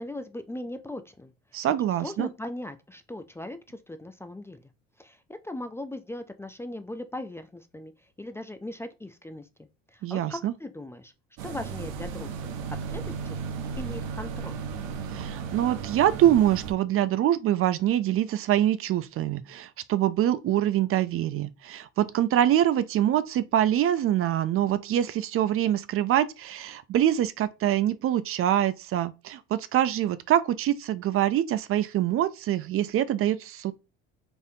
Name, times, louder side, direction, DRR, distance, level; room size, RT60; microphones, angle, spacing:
voice 1, 0.0-1.3 1.6-1.7 2.0-4.6 5.0-11.1 11.4-13.4 13.7-14.6, left 1 dB, 10° left, 0.4 m, -39 dB
voice 2, 1.5-2.3 10.0-10.5 15.1-33.7, right 11 dB, 50° right, 0.5 m, -25 dB
sound 1, 11.4-16.7, right 6 dB, 80° right, 0.8 m, -35 dB
4.3 x 3.4 x 2.7 m
supercardioid pair, 85°, 29 cm